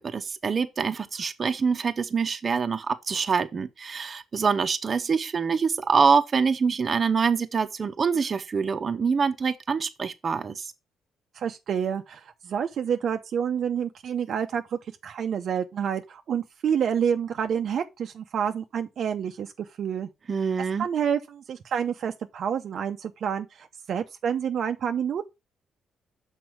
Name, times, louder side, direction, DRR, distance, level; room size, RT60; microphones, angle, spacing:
voice 1, 0.0-10.7 20.3-20.9, right 5 dB, 40° right, 0.8 m, -25 dB
voice 2, 11.3-20.1 20.8-25.2, right 8 dB, 60° right, 0.6 m, -28 dB
6.2 x 4.5 x 4.6 m
cardioid pair, 90°, 0 cm